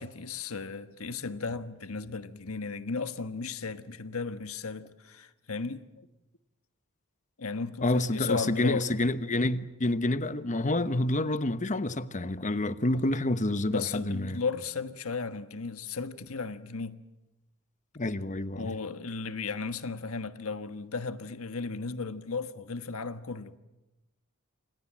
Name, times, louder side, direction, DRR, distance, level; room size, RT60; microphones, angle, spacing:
voice 1, 0.0-6.1 7.4-8.9 13.7-17.0 18.6-23.6, left 4 dB, 80° left, 1.4 m, -35 dB
voice 2, 7.8-14.4 17.9-18.8, left 2 dB, 35° left, 1.1 m, -28 dB
28.5 x 26.5 x 7.5 m
head